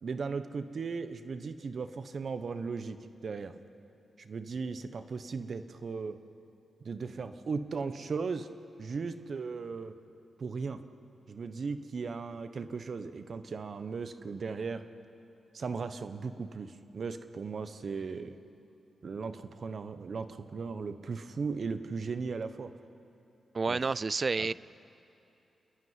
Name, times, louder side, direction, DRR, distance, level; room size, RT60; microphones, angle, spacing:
voice 1, 0.0-3.0 3.2-3.5 4.2-6.2 6.8-8.5 8.8-9.9 10.4-10.8 11.3-14.8 15.5-18.4 19.0-22.7 23.7-23.8 24.4-24.5, right 4 dB, 60° right, 10 dB, 1.1 m, -37 dB
voice 2, 23.5-24.5, right 4 dB, 45° right, 20 dB, 0.4 m, -29 dB
29.5 x 10.5 x 9.7 m, 2.9 s
cardioid pair, 70°, 0 cm